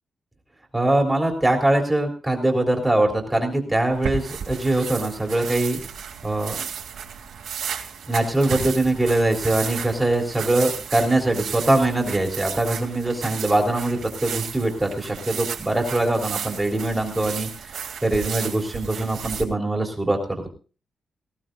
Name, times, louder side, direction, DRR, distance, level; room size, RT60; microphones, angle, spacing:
voice 1, 0.7-5.8 6.2-6.6 8.1-17.5 17.7-20.5, right 2 dB, 10° right, 2 dB, 3.5 m, -22 dB
sound 1, 3.9-19.4, right 7 dB, 85° right, 3.0 m, -33 dB
19.0 x 18.0 x 2.7 m, 0.36 s
wide cardioid pair, 135°, 0 cm